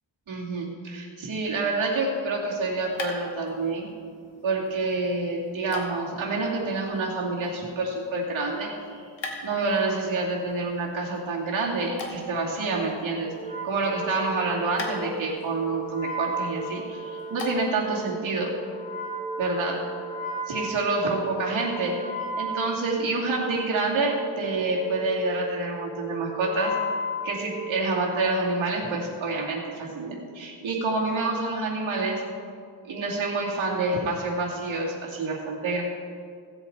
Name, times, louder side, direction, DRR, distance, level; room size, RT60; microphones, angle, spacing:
voice 1, 0.3-3.9 4.4-9.1 9.4-13.3 13.6-18.6 19.4-19.9 20.5-26.8 27.2-32.2 32.8-35.8, right 3 dB, 85° right, -3 dB, 2.5 m, -28 dB
sound 1, 2.3-17.9, left 2 dB, 75° left, 1.8 m, -44 dB
Wind instrument woodwind instrument, 13.4-28.1, right 1 dB, 15° left, 1.2 m, -35 dB
16.5 x 8.1 x 4.4 m, 2.2 s
wide cardioid pair, 160°, 46 cm